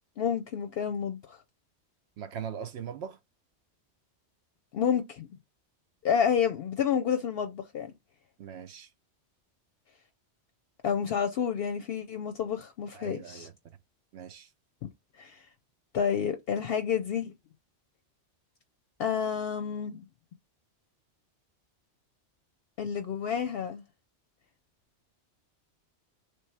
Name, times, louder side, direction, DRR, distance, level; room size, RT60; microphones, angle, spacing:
voice 1, 0.2-1.4 4.7-5.3 6.0-7.9 10.8-13.5 15.2-15.4 15.9-17.3 19.0-20.1 22.8-23.8, left 7 dB, 65° left, 0.7 m, -29 dB
voice 2, 2.2-3.2 8.4-8.9 12.9-13.5 14.1-14.5, right 8 dB, 75° right, 0.8 m, -40 dB
3.2 x 3.0 x 4.5 m
omnidirectional pair, 1.2 m